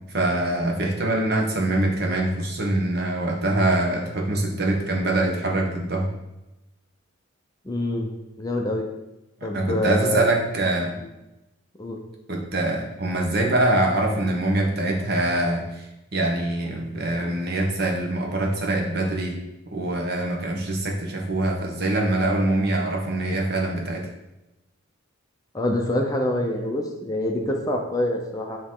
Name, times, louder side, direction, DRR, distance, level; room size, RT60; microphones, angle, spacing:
voice 1, 0.1-6.1 9.5-10.9 12.3-15.9 16.1-19.4 19.7-24.1, right 1 dB, 50° right, 0 dB, 1.0 m, -24 dB
voice 2, 7.6-8.1 8.4-8.9 9.4-10.3 11.0-11.1 11.8-12.0 25.5-28.6, left 1 dB, 15° left, 1 dB, 0.5 m, -26 dB
8.6 x 3.0 x 3.7 m, 0.95 s
head